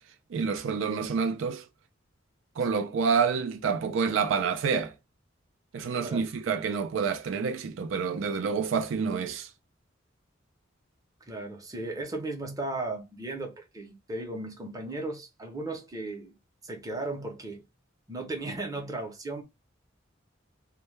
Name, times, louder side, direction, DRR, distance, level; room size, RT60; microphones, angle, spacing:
voice 1, 0.3-1.7 2.6-4.9 5.7-9.5, right 5 dB, 70° right, 0.4 m, -28 dB
voice 2, 11.3-16.4 16.6-17.6 18.1-19.4, right 2 dB, 20° right, 0.6 m, -36 dB
2.2 x 2.1 x 3.1 m
head